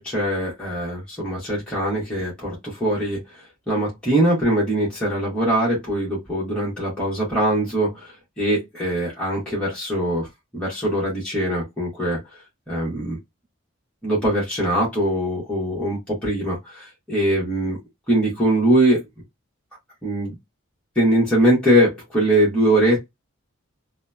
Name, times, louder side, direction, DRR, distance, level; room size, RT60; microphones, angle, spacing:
voice 1, 0.0-3.2 3.7-10.3 10.5-12.2 12.7-13.2 14.0-17.8 18.1-19.0 20.0-20.3 21.0-23.0, right 1 dB, 5° left, 0.9 m, -22 dB
2.8 x 2.0 x 2.2 m
head